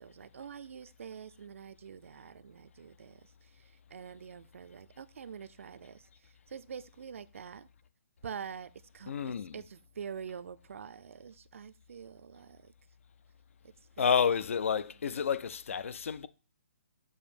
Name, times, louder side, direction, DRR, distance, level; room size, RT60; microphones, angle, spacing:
voice 1, 0.0-3.2 3.9-6.1 6.5-7.7 8.2-9.1 9.5-12.7 14.0-14.3, right 7 dB, 70° right, 0.4 m, -45 dB
voice 2, 9.1-9.7 14.0-16.3, left 7 dB, 75° left, 0.4 m, -30 dB
7.1 x 2.7 x 5.0 m
hypercardioid pair, 160°, 7 cm